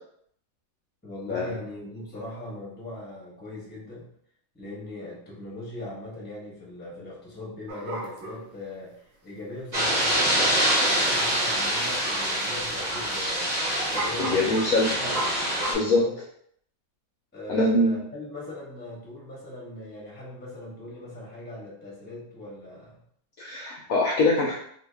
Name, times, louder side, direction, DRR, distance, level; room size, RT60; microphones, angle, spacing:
voice 1, 1.0-4.1 4.5-13.5 13.9-15.2 15.7-16.1 17.3-23.0, left 1 dB, 10° left, -5 dB, 0.7 m, -40 dB
sound 1, 7.7-8.5 10.4-10.5 10.9-11.0 11.6-11.9 12.1-12.2 13.9-15.8, right 1 dB, 85° right, 1.5 m, -33 dB
sound 2, 9.7-15.7, right 1 dB, 30° right, 1.1 m, -25 dB
voice 2, 14.2-15.0 15.7-16.0 17.5-18.0 23.4-24.5, left 2 dB, 70° left, -2 dB, 0.8 m, -23 dB
2.8 x 2.8 x 3.3 m, 0.67 s
omnidirectional pair, 1.9 m